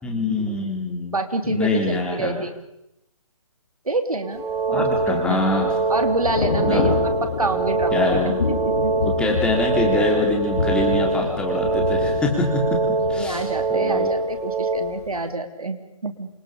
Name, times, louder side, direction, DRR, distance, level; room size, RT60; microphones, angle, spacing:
voice 1, 0.0-1.2 1.4-2.4 4.7-5.7 6.6-6.9 7.9-8.4 9.2-12.8 13.1-13.4 13.7-14.1, left 2 dB, 5° left, 0 dB, 3.8 m, -24 dB
voice 2, 1.1-2.5 3.8-5.4 5.9-6.9 7.4-8.3 8.8-9.3 13.1-16.3, right 2 dB, 85° right, 7 dB, 3.3 m, -27 dB
sound 1, 4.2-14.8, right 3 dB, 10° right, 3.2 m, -24 dB
Thunder / Rain, 4.5-14.4 14.8-15.0, left 5 dB, 50° left, 5.1 m, -28 dB
27.5 x 24.5 x 5.3 m, 0.86 s
figure-of-eight pair, 150°, 18 cm